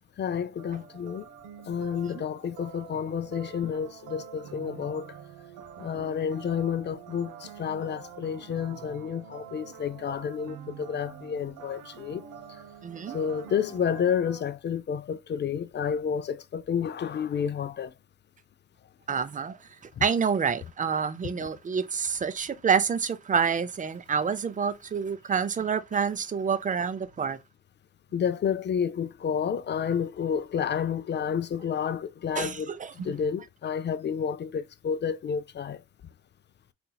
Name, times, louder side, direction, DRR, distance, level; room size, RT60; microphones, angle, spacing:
voice 1, 0.2-1.3 1.7-5.1 5.8-12.2 13.1-17.9 20.0-20.1 28.1-32.7 33.0-35.8, left 7 dB, 35° left, 0.4 m, -30 dB
sound 1, 0.6-14.4, right 8 dB, 90° right, 0.7 m, -46 dB
voice 2, 12.8-13.2 19.1-19.6 20.0-27.4 32.4-33.1, right 6 dB, 25° right, 0.5 m, -28 dB
4.2 x 2.8 x 2.2 m
cardioid pair, 90°, 30 cm